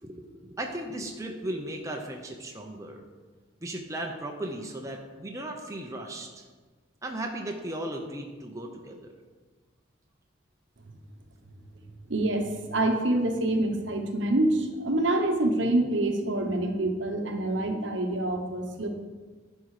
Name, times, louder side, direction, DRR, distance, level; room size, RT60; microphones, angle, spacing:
voice 1, 0.0-3.0 3.6-6.4 7.0-9.2, right 1 dB, 15° right, 1 dB, 0.7 m, -36 dB
voice 2, 12.1-18.9, right 1 dB, 65° right, 4 dB, 1.1 m, -26 dB
11.5 x 5.4 x 4.9 m, 1.4 s
head